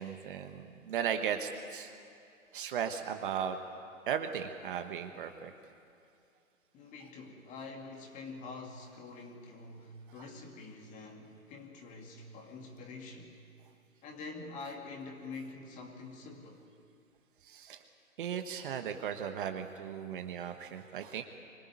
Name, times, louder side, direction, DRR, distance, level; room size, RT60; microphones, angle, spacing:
voice 1, 0.0-1.9 2.5-3.6 4.1-5.5 10.2-10.3 17.4-17.8 18.2-21.2, right 8 dB, 35° right, 7 dB, 1.4 m, -36 dB
voice 2, 6.7-13.4 14.0-16.6, left 3 dB, 15° left, 3 dB, 2.4 m, -46 dB
24.5 x 21.0 x 9.6 m, 2.5 s
figure-of-eight pair, 135°, 42 cm